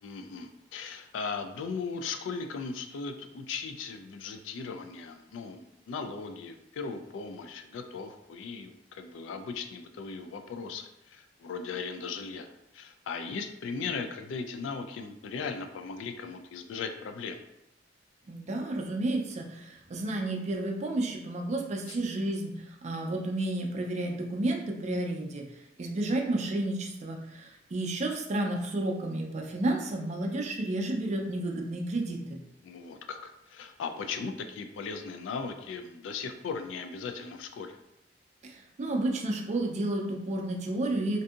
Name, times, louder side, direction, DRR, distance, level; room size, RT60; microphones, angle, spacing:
voice 1, 0.0-12.5 12.7-17.4 21.9-22.0 32.6-37.8, left 5 dB, 90° left, 6 dB, 0.3 m, -38 dB
voice 2, 18.3-22.6 22.8-25.4 25.8-32.4 38.4-41.2, right 2 dB, 40° right, 1 dB, 0.4 m, -31 dB
2.6 x 2.5 x 2.4 m, 0.86 s
head